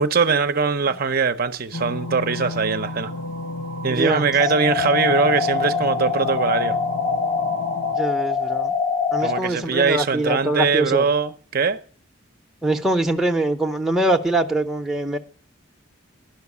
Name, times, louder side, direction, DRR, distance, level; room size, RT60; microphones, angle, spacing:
voice 1, 0.0-3.1 3.8-6.8 9.2-11.8, right 5 dB, 45° right, 0.6 m, -21 dB
sound 1, 1.7-8.0, left 1 dB, 75° left, 1.0 m, -32 dB
voice 2, 3.9-4.3 7.9-8.7 9.1-11.1 12.6-15.2, right 1 dB, ahead, 0.7 m, -23 dB
sound 2, 4.4-9.4, left 5 dB, 30° left, 0.7 m, -24 dB
11.5 x 5.8 x 8.3 m
head